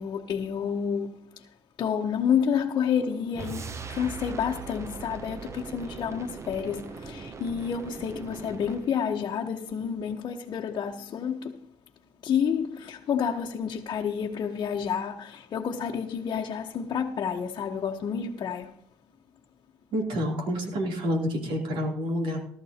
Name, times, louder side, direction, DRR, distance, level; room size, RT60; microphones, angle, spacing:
voice 1, 0.0-1.5 1.8-11.6 12.2-18.8, left 7 dB, 50° left, 1.1 m, -29 dB
sound 1, 3.3-9.0, right 5 dB, 30° right, 0.7 m, -40 dB
voice 2, 19.9-22.5, equal, 75° right, 3.2 m, -28 dB
18.0 x 13.0 x 2.9 m
cardioid pair, 105°, 9 cm